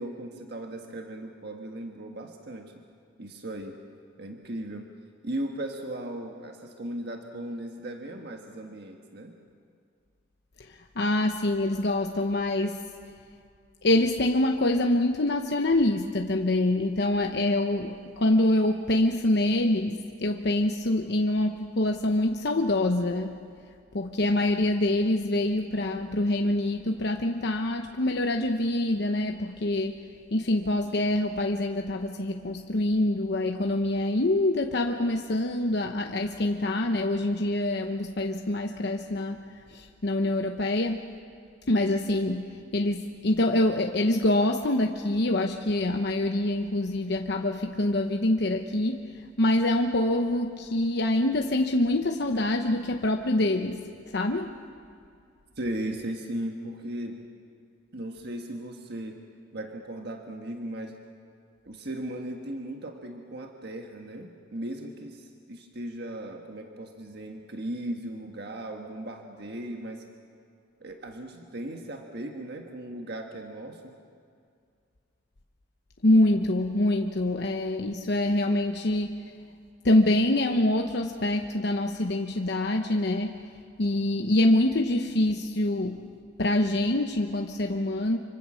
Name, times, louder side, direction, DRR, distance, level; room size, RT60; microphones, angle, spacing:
voice 1, 0.0-2.7 3.2-3.8 4.2-4.9 5.2-9.3 55.6-57.2 57.9-59.2 59.5-61.0 61.6-70.0 70.8-73.9, right 1 dB, 60° right, 3 dB, 1.6 m, -37 dB
voice 2, 10.6-12.8 13.8-23.4 23.9-30.0 30.3-41.0 41.7-53.8 54.1-54.6 76.0-79.3 79.8-83.3 83.8-86.0 86.4-88.2, left 1 dB, 60° left, 3 dB, 1.0 m, -25 dB
26.0 x 24.5 x 6.4 m, 2.3 s
head